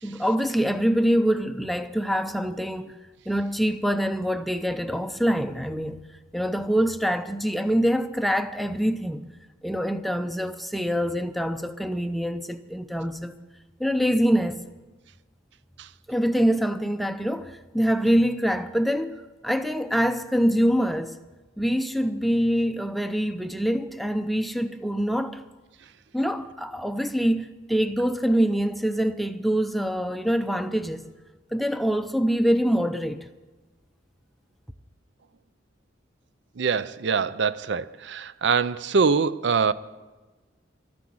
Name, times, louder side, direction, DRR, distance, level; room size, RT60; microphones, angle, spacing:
voice 1, 0.0-3.0 3.3-6.0 6.3-9.2 9.6-13.3 13.8-14.6 16.1-21.2 21.6-25.4 26.1-31.1 31.5-33.3, equal, ahead, 0.5 m, -25 dB
voice 2, 36.6-39.7, right 5 dB, 60° right, 0.5 m, -24 dB
13.0 x 9.9 x 8.6 m
head